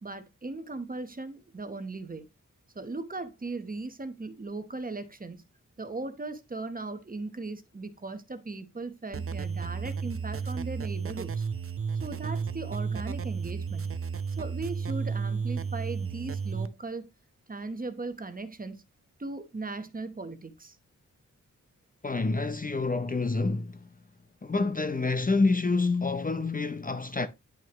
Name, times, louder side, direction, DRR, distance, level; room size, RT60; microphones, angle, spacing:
voice 1, 0.0-2.2 2.7-5.4 5.8-11.4 12.0-13.9 14.3-17.1 17.5-18.8 19.2-20.8, right 3 dB, 25° right, 1.0 m, -38 dB
sound 1, 9.1-16.7, right 6 dB, 45° right, 0.6 m, -33 dB
voice 2, 22.0-23.9 24.4-27.3, left 3 dB, 25° left, 0.6 m, -27 dB
10.5 x 6.3 x 3.0 m
wide cardioid pair, 145°, 32 cm